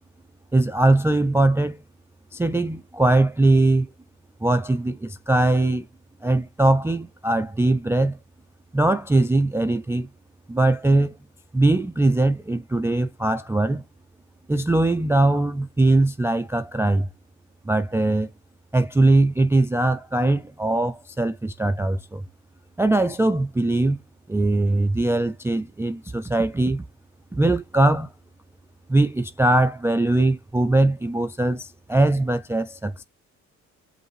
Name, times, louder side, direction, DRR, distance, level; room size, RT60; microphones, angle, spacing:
voice 1, 0.5-1.8 2.3-3.9 4.4-5.8 6.2-8.2 8.7-10.1 10.5-11.2 11.5-13.8 14.5-17.1 17.7-18.3 18.7-22.3 22.8-24.0 24.3-26.8 27.3-28.1 28.9-33.0, right 2 dB, 10° right, 0.3 m, -21 dB
5.3 x 2.5 x 3.1 m
cardioid pair, 90°, 30 cm